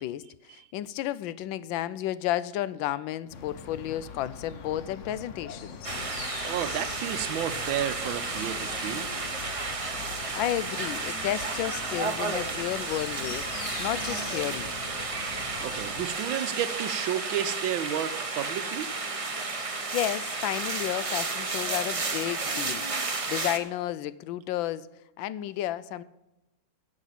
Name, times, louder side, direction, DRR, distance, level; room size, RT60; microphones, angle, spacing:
voice 1, 0.0-5.9 10.3-14.7 19.6-22.8 23.3-24.9 25.2-26.0, left 13 dB, 75° left, 17 dB, 1.2 m, -32 dB
sound 1, 3.3-16.1, left 6 dB, 55° left, 0.8 m, -42 dB
sound 2, 5.8-23.6, right 3 dB, 50° right, 0.4 m, -32 dB
voice 2, 6.5-9.1 15.6-18.9, right 10 dB, 75° right, 13 dB, 1.4 m, -31 dB
9.9 x 6.5 x 8.6 m, 0.97 s
omnidirectional pair, 2.3 m